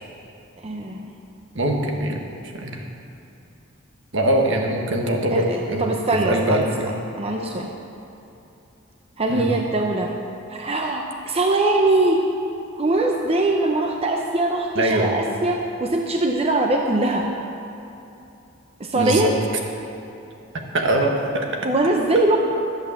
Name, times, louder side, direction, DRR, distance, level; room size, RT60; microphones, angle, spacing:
voice 1, 0.6-1.1 5.3-7.7 9.2-10.1 10.5-12.3 12.8-17.3 18.8-19.3 21.6-22.4, right 2 dB, 30° right, 1 dB, 0.7 m, -22 dB
voice 2, 1.5-2.2 2.5-2.8 4.1-5.9 6.2-6.9 9.3-9.5 14.7-15.1 18.9-19.3 20.7-21.5, right 1 dB, 65° right, 1 dB, 1.6 m, -22 dB
12.0 x 8.2 x 7.1 m, 2.8 s
head